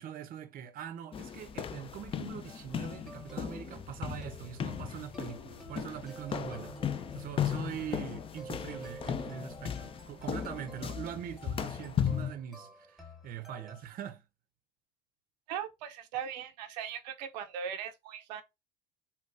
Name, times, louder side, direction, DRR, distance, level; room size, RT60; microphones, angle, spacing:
voice 1, 0.0-14.2, right 9 dB, 45° right, 0.6 m, -43 dB
sound 1, 1.1-12.3, left 8 dB, 25° left, 0.3 m, -36 dB
sound 2, 2.5-13.8, equal, ahead, 1.0 m, -51 dB
voice 2, 15.5-18.4, right 8 dB, 90° right, 0.5 m, -39 dB
3.8 x 2.2 x 2.4 m
supercardioid pair, 85°, 21 cm